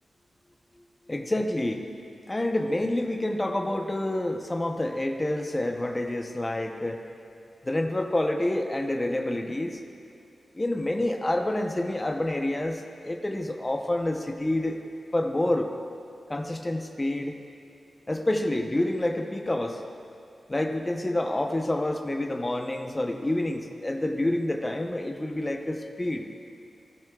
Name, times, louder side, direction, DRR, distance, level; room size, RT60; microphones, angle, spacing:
voice 1, 1.1-1.8 2.3-7.0 7.6-9.8 10.5-14.8 15.1-15.7 16.3-17.4 18.1-19.8 20.5-26.3, left 1 dB, 15° left, 3 dB, 0.7 m, -28 dB
20.0 x 14.0 x 2.3 m, 2.6 s
wide cardioid pair, 175°, 0 cm